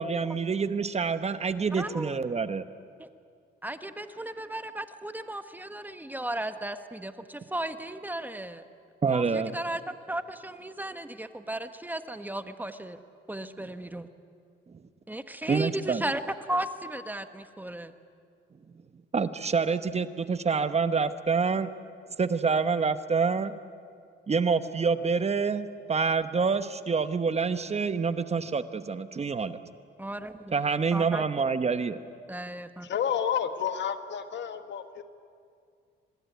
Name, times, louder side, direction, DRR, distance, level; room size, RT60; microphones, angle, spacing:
voice 1, 0.0-2.6 9.0-9.6 15.5-16.0 19.1-21.7 22.2-23.5 24.3-29.6 30.5-32.0, right 5 dB, 30° right, 11 dB, 1.0 m, -27 dB
voice 2, 1.7-2.2 3.0-3.1 3.6-8.6 9.1-13.0 13.3-14.1 15.1-16.2 16.5-17.9 30.0-30.6 30.9-31.2 32.3-32.9, right 1 dB, 10° right, 9 dB, 1.4 m, -35 dB
voice 3, 32.8-35.0, left 8 dB, 65° left, 9 dB, 1.6 m, -30 dB
25.0 x 20.0 x 9.4 m, 2.2 s
cardioid pair, 90°, 20 cm